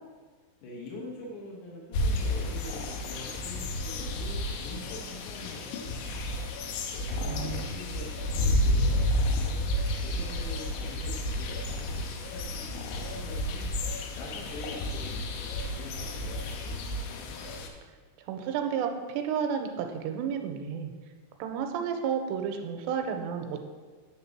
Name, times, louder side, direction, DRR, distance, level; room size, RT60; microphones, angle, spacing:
voice 1, 0.6-6.4 6.9-9.6 10.0-13.7 14.2-17.2, left 1 dB, 70° left, -4 dB, 1.9 m, -44 dB
sound 1, 1.9-17.7, left 1 dB, 90° left, 2.9 m, -31 dB
voice 2, 7.3-7.8 18.3-20.9 21.4-23.7, right 7 dB, 80° right, 5 dB, 2.7 m, -32 dB
9.5 x 3.8 x 5.9 m, 1.5 s
omnidirectional pair, 5.0 m